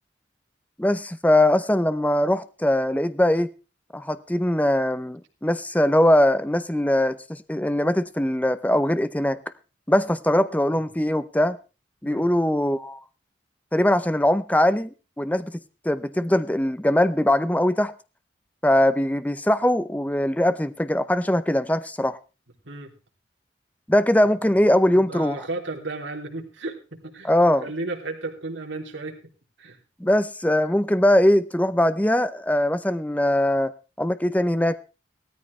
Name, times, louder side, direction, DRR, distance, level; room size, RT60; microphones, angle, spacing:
voice 1, 0.8-3.5 3.9-9.4 9.9-11.6 12.0-13.0 13.7-14.9 15.2-15.5 15.8-17.9 18.6-22.2 23.9-25.4 27.2-27.6 30.0-33.7 34.0-34.8, left 1 dB, 10° left, 12 dB, 0.7 m, -21 dB
voice 2, 10.3-10.8 12.0-12.3 22.6-22.9 25.0-29.3 29.6-29.8, right 2 dB, 85° right, 1 dB, 3.2 m, -34 dB
16.5 x 13.5 x 3.3 m, 0.32 s
head